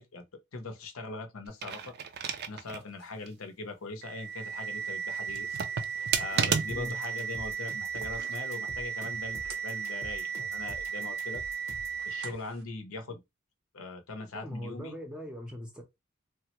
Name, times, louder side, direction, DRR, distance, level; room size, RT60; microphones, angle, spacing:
voice 1, 0.0-1.9 2.2-5.5 6.2-11.4 12.0-13.2 13.7-14.9, left 3 dB, 80° left, 0.6 m, -41 dB
sound 1, 1.5-2.9 3.3-3.4 5.3-7.1 7.9-8.4, right 6 dB, 50° right, 0.4 m, -32 dB
sound 2, 4.0-12.5, right 7 dB, 90° right, 0.8 m, -36 dB
sound 3, 6.7-12.0, left 1 dB, 30° left, 0.7 m, -47 dB
voice 2, 6.7-7.0 14.3-15.8, left 1 dB, 5° right, 0.6 m, -40 dB
3.3 x 2.1 x 2.9 m
head